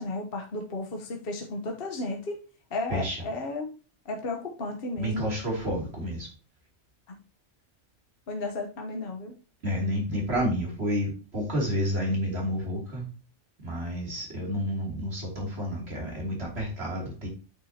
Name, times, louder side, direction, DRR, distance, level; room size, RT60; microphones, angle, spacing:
voice 1, 0.0-2.4 2.7-3.7 4.0-5.3 7.1-7.2 8.3-9.3, left 2 dB, 55° left, 2 dB, 1.2 m, -33 dB
voice 2, 5.0-6.3 9.6-13.1 13.6-17.3, equal, 60° right, -1 dB, 3.1 m, -30 dB
8.5 x 6.1 x 2.8 m, 0.34 s
omnidirectional pair, 1.2 m